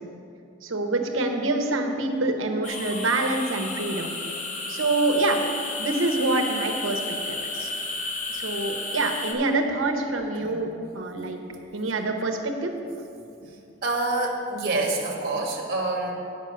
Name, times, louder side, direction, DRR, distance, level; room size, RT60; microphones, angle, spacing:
voice 1, 0.6-4.1 4.7-5.4 5.8-7.7 8.3-10.7 10.9-11.4 11.7-12.7, right 2 dB, 85° right, 4 dB, 1.0 m, -26 dB
sound 1, 2.6-9.3, left 3 dB, 40° left, 1.0 m, -32 dB
voice 2, 13.8-16.1, right 2 dB, 50° right, 0 dB, 1.3 m, -27 dB
8.7 x 5.9 x 6.8 m, 2.6 s
head